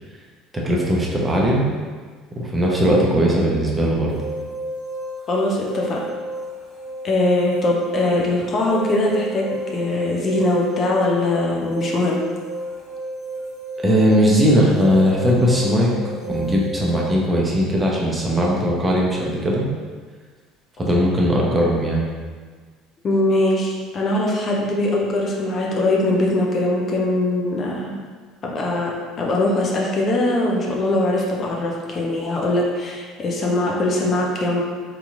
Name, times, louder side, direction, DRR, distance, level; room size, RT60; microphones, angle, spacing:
voice 1, 0.5-1.6 2.3-4.1 13.8-15.9 16.2-19.6 20.8-22.0, equal, 15° right, -3 dB, 0.8 m, -19 dB
sound 1, 4.1-17.1, right 1 dB, 70° left, 1.3 m, -32 dB
voice 2, 5.3-6.1 7.0-12.2 23.0-28.0 28.4-34.6, left 2 dB, 40° left, -2 dB, 0.6 m, -21 dB
3.8 x 2.9 x 2.4 m, 1.5 s
hypercardioid pair, 65°, 0 cm